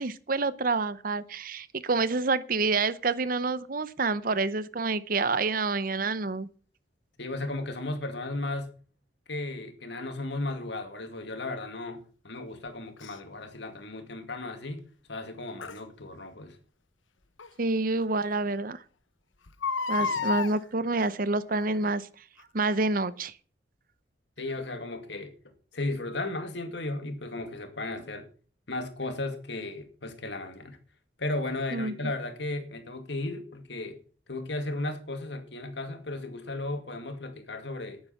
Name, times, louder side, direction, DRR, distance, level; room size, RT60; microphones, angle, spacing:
voice 1, 0.0-6.5 17.6-18.8 19.9-22.1 22.5-23.3 31.7-31.9, right 3 dB, 45° right, 0.7 m, -28 dB
voice 2, 7.2-8.7 9.3-16.6 20.0-20.3 24.4-25.3 25.7-28.3 28.7-30.8 31.2-34.0 34.3-38.0, left 2 dB, 65° left, 2.3 m, -35 dB
Crying sobbing, 13.0-13.1 15.6-15.8 17.4-17.5 18.0-18.1 18.3-18.4 19.5-20.5 21.5-21.8 22.4-22.5, left 5 dB, 85° left, 1.1 m, -30 dB
11.0 x 9.6 x 5.8 m
head